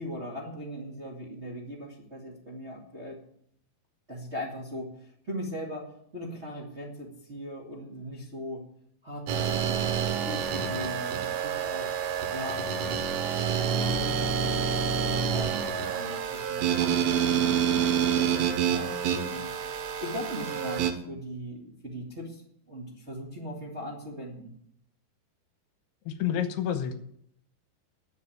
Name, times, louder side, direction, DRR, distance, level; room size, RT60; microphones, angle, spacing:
voice 1, 0.0-3.2 4.1-8.6 9.0-11.9 12.3-13.1 13.7-19.5 20.0-24.5, equal, 20° right, -3 dB, 1.9 m, -39 dB
sound 1, 9.3-20.9, right 7 dB, 85° right, 3.3 m, -28 dB
voice 2, 26.1-26.9, left 9 dB, 80° left, 8 dB, 3.0 m, -29 dB
11.5 x 7.3 x 9.3 m, 0.68 s
omnidirectional pair, 4.7 m